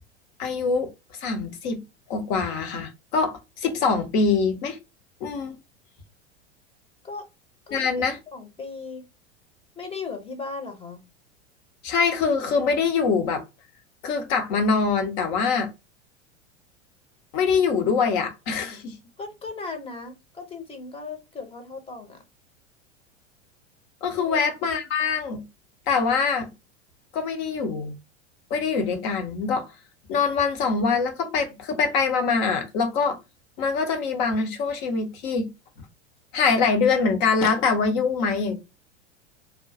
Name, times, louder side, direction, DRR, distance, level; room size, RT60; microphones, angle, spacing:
voice 1, 0.4-0.9 1.2-1.8 2.1-4.8 5.2-5.6 7.7-8.2 11.8-13.4 14.0-15.7 17.3-18.9 24.0-25.4 25.9-26.5 27.1-28.0 28.5-29.7 30.1-33.2 33.6-35.5 36.3-38.5, left 5 dB, 45° left, 0.9 m, -24 dB
voice 2, 7.7-9.1 9.8-11.0 19.2-22.2 24.2-24.7, left 4 dB, 15° left, 0.8 m, -37 dB
2.2 x 2.2 x 3.7 m
figure-of-eight pair, 90°, 36 cm